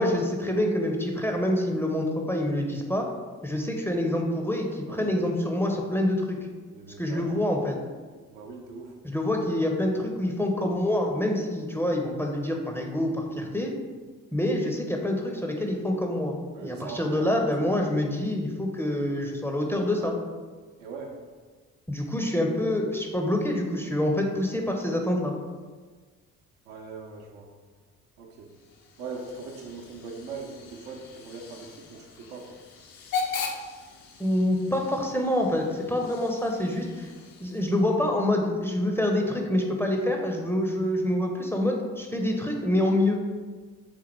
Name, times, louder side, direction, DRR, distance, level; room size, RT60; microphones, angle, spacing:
voice 1, 0.0-3.1 3.4-6.4 7.0-7.8 9.0-13.7 14.3-20.1 21.9-25.3 34.2-37.1 37.4-43.2, left 1 dB, 5° left, 1 dB, 0.6 m, -26 dB
voice 2, 6.7-7.4 8.3-9.0 16.5-17.5 20.8-21.2 26.7-27.5 28.2-28.5 29.0-32.6, right 4 dB, 70° right, 1 dB, 0.7 m, -40 dB
Hiss / Train / Alarm, 28.4-38.0, left 5 dB, 60° left, 0.7 m, -39 dB
3.5 x 3.3 x 4.4 m, 1.4 s
figure-of-eight pair, 45°, 40 cm